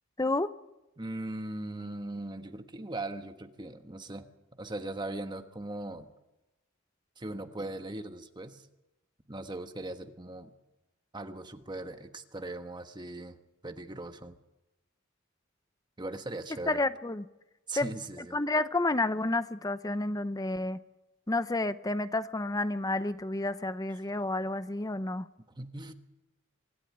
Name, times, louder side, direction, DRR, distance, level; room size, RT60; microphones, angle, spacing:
voice 1, 0.2-0.5 16.7-17.2 17.8-17.9 18.3-20.8 21.3-25.3, left 2 dB, 15° left, 0.7 m, -30 dB
voice 2, 1.0-4.3 4.6-6.1 7.2-8.6 9.3-10.5 11.1-13.4 13.6-14.3 16.0-16.8 17.7-18.4 25.6-25.9, right 2 dB, 20° right, 1.3 m, -39 dB
25.0 x 13.0 x 9.9 m
head